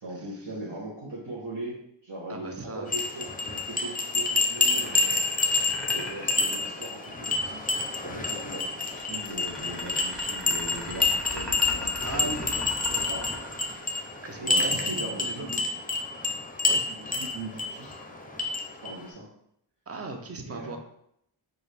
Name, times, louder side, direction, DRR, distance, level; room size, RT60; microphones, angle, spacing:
voice 1, 0.0-5.2 5.9-12.3 13.1-13.3 14.4-15.6 16.6-18.0 18.8-19.3 20.4-20.8, right 1 dB, 55° right, -7 dB, 1.1 m, -39 dB
voice 2, 2.3-2.9 11.8-13.0 14.2-14.9 15.2-15.5 16.7-16.8 19.9-20.8, right 3 dB, 30° right, 4 dB, 0.6 m, -37 dB
sound 1, 2.9-19.0, left 3 dB, 20° left, 0.6 m, -28 dB
sound 2, 4.3-7.5 8.9-14.4, left 1 dB, ahead, 1.1 m, -39 dB
4.6 x 2.6 x 3.3 m, 0.74 s
wide cardioid pair, 65°, 49 cm